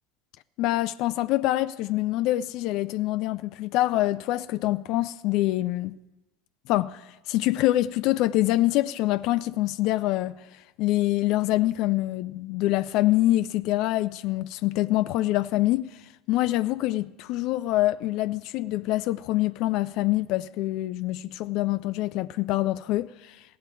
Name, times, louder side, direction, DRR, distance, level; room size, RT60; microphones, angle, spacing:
voice 1, 0.6-6.0 6.7-10.4 10.8-16.0 16.3-23.4, left 16 dB, 60° left, 0.4 m, -25 dB
16.5 x 8.1 x 4.6 m
hypercardioid pair, 80°, 0 cm